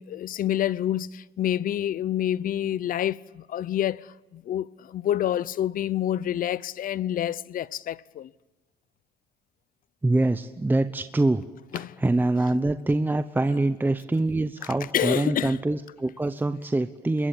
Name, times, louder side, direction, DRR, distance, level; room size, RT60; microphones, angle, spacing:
voice 1, 0.0-8.3 11.7-12.0 14.9-15.6, left 11 dB, 55° left, 0.8 m, -28 dB
voice 2, 10.0-11.4 12.0-17.3, right 2 dB, 10° right, 0.9 m, -24 dB
25.5 x 22.0 x 8.6 m
cardioid pair, 110°, 17 cm